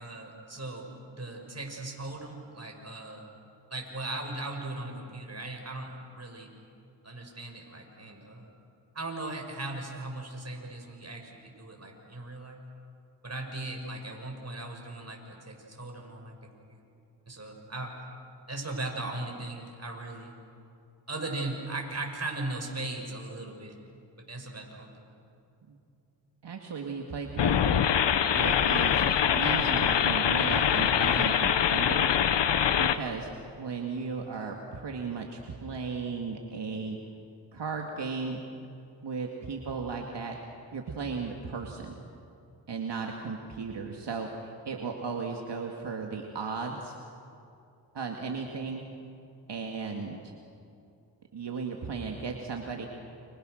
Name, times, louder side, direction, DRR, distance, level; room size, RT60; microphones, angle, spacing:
voice 1, 0.0-3.3 3.7-6.5 7.0-8.5 8.9-12.6 13.2-16.8 17.3-18.0 18.5-20.4 21.1-23.8 24.3-25.1, right 2 dB, 35° right, 2 dB, 6.2 m, -38 dB
voice 2, 26.4-27.9 28.3-29.0 29.3-32.1 32.8-33.3 33.6-37.0 37.5-38.4 39.0-40.4 40.7-41.9 42.7-47.0 47.9-48.8 49.5-50.3 51.3-52.9, right 4 dB, 70° right, 1 dB, 2.3 m, -35 dB
sound 1, 27.4-33.0, left 8 dB, 75° left, 1.1 m, -24 dB
29.5 x 27.5 x 6.6 m, 2.6 s
cardioid pair, 60°, 43 cm